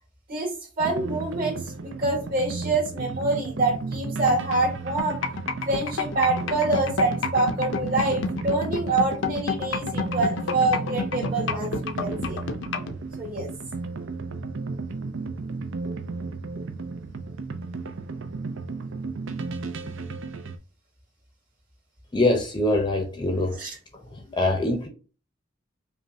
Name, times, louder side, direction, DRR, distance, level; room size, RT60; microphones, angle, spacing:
voice 1, 0.3-5.2 5.7-12.4 13.2-13.5 23.6-23.7, right 2 dB, 45° right, 2.1 m, -26 dB
sound 1, 0.8-20.6, right 3 dB, 65° right, 0.5 m, -34 dB
sound 2, 5.0-12.9, left 5 dB, 65° left, 0.5 m, -28 dB
voice 2, 22.1-23.6 23.9-24.9, left 1 dB, 25° left, 0.6 m, -24 dB
5.3 x 2.2 x 2.7 m
head